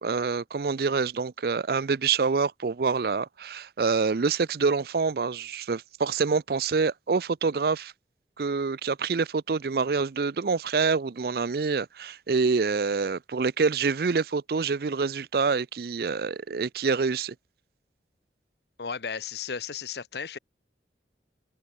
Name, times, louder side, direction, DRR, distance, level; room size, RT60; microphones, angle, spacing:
voice 1, 0.0-7.9 8.4-17.3, right 4 dB, 55° right, 0.5 m, -26 dB
voice 2, 18.8-20.4, left 6 dB, 70° left, 0.8 m, -34 dB
head